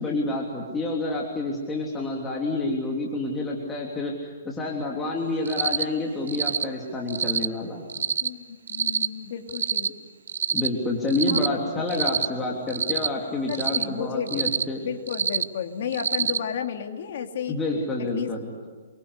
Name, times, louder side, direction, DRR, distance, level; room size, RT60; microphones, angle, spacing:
voice 1, 0.0-4.1 4.4-7.8 10.5-14.8 17.5-18.5, left 2 dB, 10° left, -1 dB, 3.2 m, -28 dB
Cricket, 5.4-5.8 6.3-6.6 7.1-7.5 7.9-8.3 8.7-9.1 9.5-9.9 10.3-10.7 11.1-11.5 11.9-12.3 12.7-13.1 13.5-13.8 14.3-14.6 15.1-15.4 15.9-16.4, right 7 dB, 85° right, 1.0 m, -25 dB
voice 2, 8.2-9.9 11.3-12.0 12.3-12.6 13.5-17.6 18.0-18.3, left 8 dB, 55° left, 5 dB, 3.0 m, -33 dB
28.0 x 24.0 x 8.2 m, 1.4 s
hypercardioid pair, 165°, 0 cm